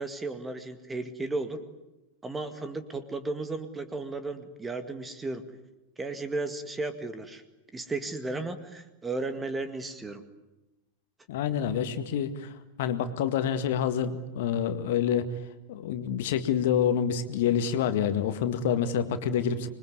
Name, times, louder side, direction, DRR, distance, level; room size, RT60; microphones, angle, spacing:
voice 1, 0.0-1.6 2.2-5.5 6.0-7.4 7.7-10.2, right 3 dB, 10° right, 10 dB, 2.0 m, -34 dB
voice 2, 11.3-12.5 12.8-15.3 15.7-19.7, left 8 dB, 55° left, 10 dB, 1.9 m, -27 dB
26.0 x 22.0 x 9.7 m, 1.0 s
figure-of-eight pair, 90°, 0 cm